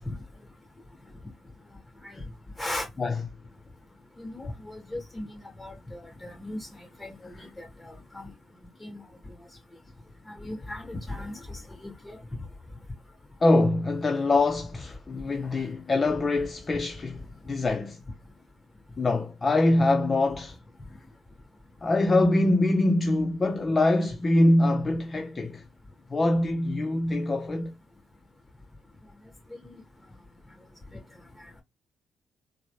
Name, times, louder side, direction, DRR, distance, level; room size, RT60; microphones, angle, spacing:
voice 1, 4.2-4.5 4.9-5.2 5.6-6.6 7.0-7.1 8.1-8.3 8.8-9.0 10.4-11.3 11.8-12.2 29.6-29.8, left 1 dB, 5° left, 2.2 m, -36 dB
voice 2, 13.4-18.0 19.0-20.6 21.8-25.6 26.1-27.7, left 2 dB, 30° left, 0.5 m, -24 dB
3.9 x 2.0 x 3.1 m
cardioid pair, 90°, 0 cm